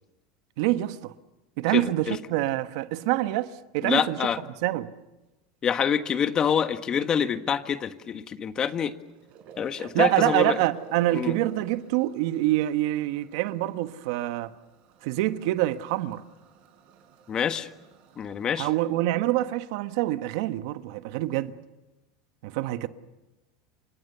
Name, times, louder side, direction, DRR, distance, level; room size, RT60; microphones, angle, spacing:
voice 1, 0.6-1.1 1.6-4.3 4.6-4.9 9.8-14.5 15.0-16.2 18.6-21.5 22.4-22.9, right 16 dB, 70° right, 1.4 m, -26 dB
voice 2, 1.7-2.2 3.8-4.4 5.6-8.9 9.6-10.6 11.1-11.3 17.3-17.7 18.2-18.7, left 7 dB, 30° left, 1.6 m, -26 dB
sound 1, 9.0-18.5, right 5 dB, 50° right, 5.6 m, -51 dB
29.5 x 26.0 x 7.0 m
supercardioid pair, 130°, 3 cm